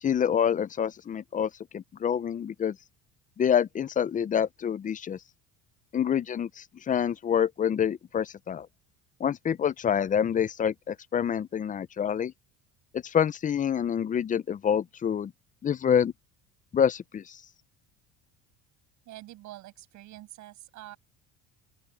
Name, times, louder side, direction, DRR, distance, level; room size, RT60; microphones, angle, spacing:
voice 1, 0.0-2.8 3.4-5.2 5.9-8.7 9.2-12.3 12.9-15.3 15.6-16.1 16.7-17.4, left 8 dB, 25° left, 0.5 m, -27 dB
voice 2, 19.1-21.0, right 15 dB, 60° right, 7.1 m, -46 dB
open air
cardioid pair, 120°, 32 cm